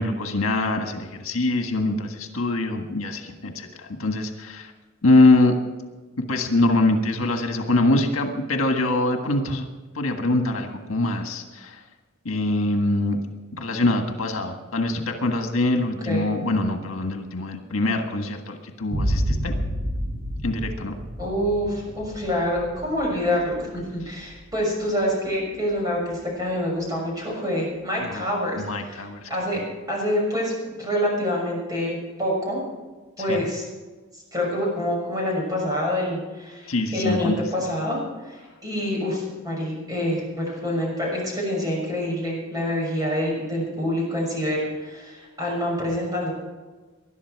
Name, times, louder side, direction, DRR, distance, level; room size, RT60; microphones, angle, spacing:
voice 1, 0.0-4.7 5.0-5.6 6.3-9.7 10.0-11.8 12.3-13.2 13.5-19.5 20.4-20.9 28.0-28.3 28.6-29.3 33.2-33.5 36.7-37.6, left 2 dB, 85° left, 4 dB, 1.6 m, -23 dB
sound 1, 18.9-26.3, equal, 60° right, 5.1 m, -30 dB
voice 2, 21.2-29.0 29.3-29.6 29.9-32.6 33.2-33.6 34.3-46.3, equal, 20° right, -2 dB, 6.4 m, -26 dB
20.5 x 12.0 x 4.7 m, 1.3 s
head